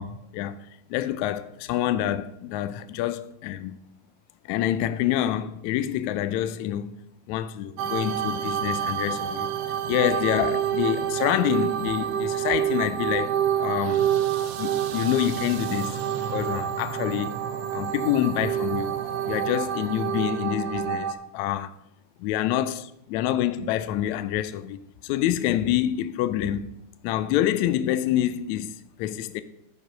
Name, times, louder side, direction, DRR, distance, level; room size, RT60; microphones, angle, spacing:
voice 1, 0.0-3.8 4.5-7.0 7.3-14.1 14.6-17.4 17.7-19.0 19.2-21.7 22.2-26.7 27.0-29.4, left 12 dB, 80° left, 1.7 m, -27 dB
sound 1, 7.8-21.1, right 9 dB, 75° right, 1.5 m, -28 dB
12.0 x 4.8 x 5.1 m
omnidirectional pair, 3.8 m